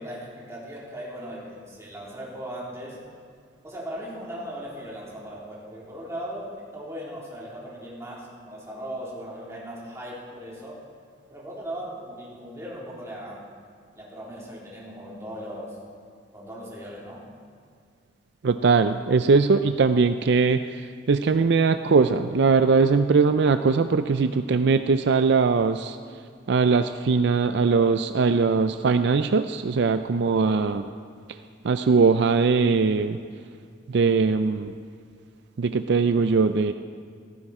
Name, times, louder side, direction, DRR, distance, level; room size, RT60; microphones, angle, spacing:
voice 1, 0.0-3.0 3.6-10.8 11.3-13.4 14.0-15.8 16.3-17.2 30.4-30.7, equal, 15° right, -6 dB, 3.7 m, -38 dB
voice 2, 18.4-26.0 26.5-30.8 31.6-33.2 33.9-34.7 35.6-36.7, right 4 dB, 65° right, 10 dB, 0.4 m, -21 dB
15.5 x 15.0 x 4.3 m, 2.2 s
head